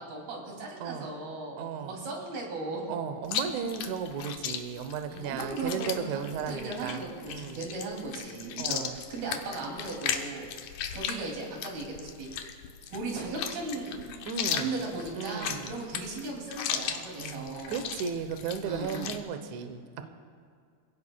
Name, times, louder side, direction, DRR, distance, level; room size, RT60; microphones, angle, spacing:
voice 1, 0.0-2.8 5.1-6.2 6.5-10.5 10.9-12.3 12.9-14.3 14.5-17.9 18.6-19.1 20.0-20.1, right 3 dB, 70° right, -1 dB, 4.6 m, -37 dB
voice 2, 1.6-2.0 2.9-7.7 8.6-9.0 14.3-14.8 15.2-15.8 17.2-19.8, right 6 dB, 85° right, 8 dB, 1.7 m, -35 dB
Chewing mastication, 3.2-19.2, left 8 dB, 90° left, 1.7 m, -36 dB
26.0 x 17.0 x 2.3 m, 2.2 s
omnidirectional pair, 4.6 m